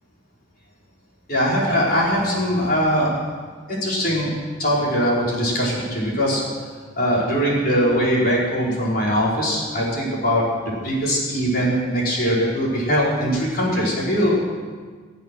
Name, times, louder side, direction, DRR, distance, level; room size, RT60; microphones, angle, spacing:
voice 1, 1.3-3.2 3.7-4.3 4.6-6.4 7.0-14.4, equal, 50° left, -5 dB, 5.2 m, -21 dB
24.0 x 8.3 x 6.3 m, 1.5 s
head